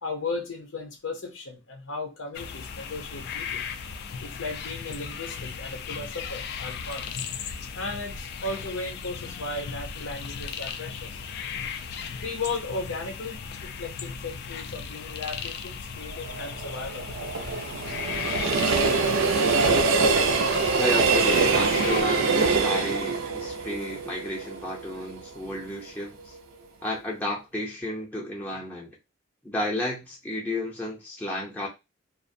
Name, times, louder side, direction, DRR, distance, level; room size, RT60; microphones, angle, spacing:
voice 1, 0.0-3.7 4.2-7.2 7.7-11.2 12.2-17.1, left 3 dB, 90° left, 0.7 m, -36 dB
sound 1, 2.3-22.0, left 6 dB, 55° left, 0.3 m, -36 dB
Train, 16.1-25.2 25.6-25.7, right 4 dB, 80° right, 0.4 m, -24 dB
voice 2, 20.8-26.3 26.8-29.0 29.4-31.7, left 1 dB, 10° left, 0.6 m, -32 dB
2.5 x 2.1 x 2.5 m
head